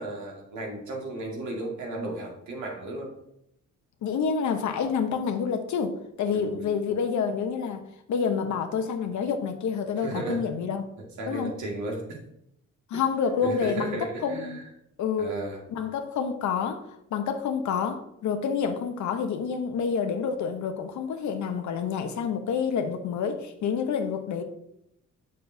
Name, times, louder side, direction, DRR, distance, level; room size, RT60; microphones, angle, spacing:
voice 1, 0.0-3.2 6.3-6.8 10.0-10.5 11.0-12.2 12.9-13.0 13.4-14.6 15.2-15.6, right 2 dB, 75° right, -1 dB, 2.0 m, -34 dB
voice 2, 4.0-7.8 8.1-10.8 11.3-11.5 12.9-14.6 15.0-15.3 15.7-24.4, left 6 dB, 75° left, 6 dB, 0.8 m, -28 dB
6.8 x 6.5 x 2.7 m, 0.77 s
cardioid pair, 115°, 30 cm